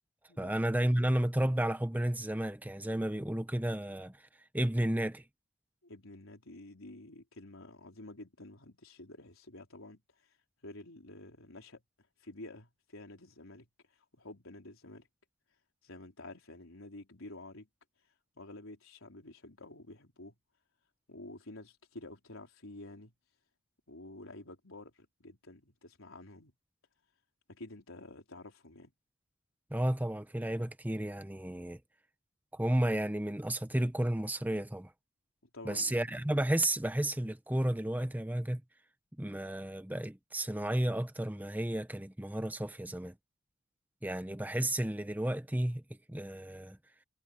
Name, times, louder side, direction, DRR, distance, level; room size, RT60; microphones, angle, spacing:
voice 1, 0.4-4.2 4.5-5.2 29.7-31.8 32.5-34.9 35.6-38.6 39.2-43.1 44.0-45.8 46.1-46.8, right 1 dB, 10° right, 0.7 m, -32 dB
voice 2, 5.8-10.0 10.6-11.8 12.2-13.7 14.1-15.1 15.8-17.7 18.4-20.3 21.1-23.1 23.9-26.5 27.5-28.9 35.5-36.0, left 2 dB, 85° left, 4.1 m, -50 dB
head